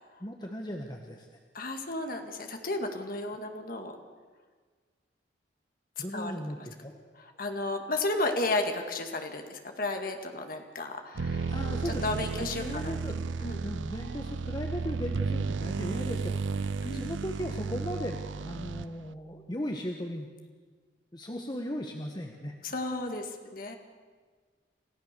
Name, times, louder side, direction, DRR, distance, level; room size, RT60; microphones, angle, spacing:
voice 1, 0.2-1.3 6.0-7.0 11.5-20.3 21.1-22.5, equal, 20° left, 2 dB, 1.3 m, -37 dB
voice 2, 1.5-4.0 6.1-6.3 7.2-11.5 11.9-12.9 13.4-13.7 16.8-17.1 22.6-23.8, left 2 dB, 50° left, 4 dB, 2.0 m, -33 dB
sound 1, 11.2-19.1, right 4 dB, 85° right, 0.5 m, -33 dB
28.5 x 15.0 x 6.9 m, 1.5 s
head